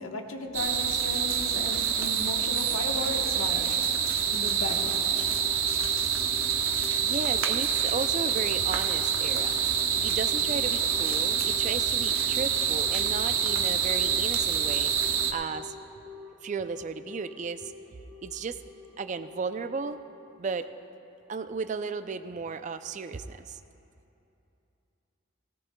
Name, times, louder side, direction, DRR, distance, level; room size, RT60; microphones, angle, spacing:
voice 1, 0.0-3.7 4.3-5.1, left 2 dB, 85° left, 3 dB, 1.2 m, -35 dB
sound 1, 0.5-15.3, right 7 dB, 90° right, 0.9 m, -27 dB
Telephone, 4.3-20.4, left 5 dB, 15° right, 1.8 m, -46 dB
voice 2, 7.0-9.6 10.0-14.9 15.3-15.7 16.4-17.7 18.2-18.6 19.0-20.0 20.4-20.7 21.3-23.6, right 4 dB, 35° right, 11 dB, 0.4 m, -34 dB
17.5 x 17.0 x 2.2 m, 2.8 s
head